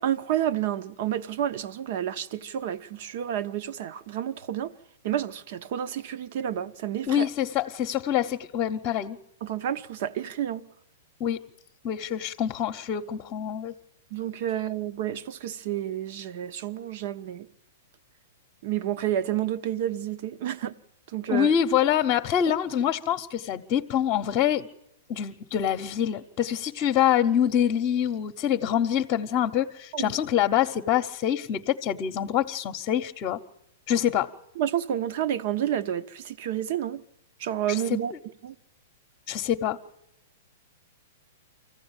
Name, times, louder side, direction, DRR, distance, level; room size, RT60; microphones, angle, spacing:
voice 1, 0.0-4.7 5.0-7.3 9.4-10.6 14.1-17.5 18.6-20.7 21.1-21.5 29.9-30.1 34.6-37.0 37.4-38.1 38.4-38.5, right 11 dB, 55° right, 0.9 m, -30 dB
voice 2, 7.1-9.2 11.2-11.4 11.8-13.7 21.3-24.7 25.1-33.4 33.9-34.3 37.7-37.8 39.3-39.8, left 10 dB, 35° left, 0.9 m, -25 dB
24.5 x 15.5 x 8.9 m
hypercardioid pair, 135°, 0 cm